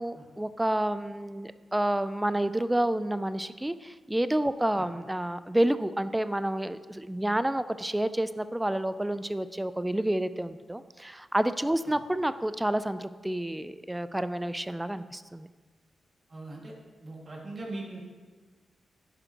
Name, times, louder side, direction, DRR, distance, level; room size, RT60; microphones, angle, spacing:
voice 1, 0.0-15.5, right 1 dB, 10° right, 13 dB, 0.3 m, -29 dB
voice 2, 16.3-16.7 17.0-18.0, right 2 dB, 45° right, -2 dB, 1.9 m, -40 dB
10.5 x 5.3 x 2.9 m, 1.4 s
cardioid pair, 60°, 0 cm